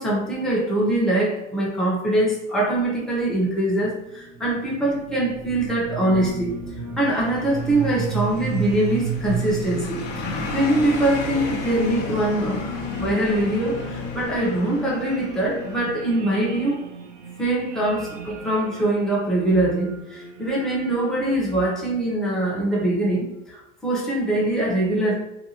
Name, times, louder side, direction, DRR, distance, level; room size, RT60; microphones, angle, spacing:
voice 1, 0.0-6.6 7.0-16.8 17.4-25.1, right 1 dB, ahead, -5 dB, 0.6 m, -23 dB
sound 1, 3.8-22.1, right 4 dB, 70° right, 0.7 m, -34 dB
sound 2, 7.0-15.9, left 3 dB, 55° left, 0.8 m, -34 dB
2.6 x 2.3 x 2.8 m, 0.90 s
supercardioid pair, 115°, 38 cm